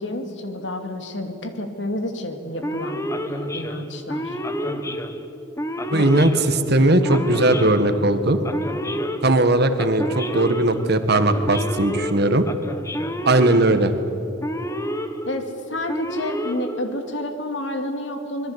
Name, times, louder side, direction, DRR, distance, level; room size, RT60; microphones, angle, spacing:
voice 1, 0.0-5.0 5.9-6.1 15.2-18.5, left 1 dB, 65° left, 6 dB, 2.7 m, -30 dB
Male speech man speaking / Siren, 2.6-17.3, equal, 15° left, 1.4 m, -30 dB
voice 2, 5.9-8.4 9.2-12.5 13.3-13.9, right 2 dB, 55° right, 9 dB, 1.8 m, -18 dB
26.0 x 22.0 x 8.2 m, 2.7 s
head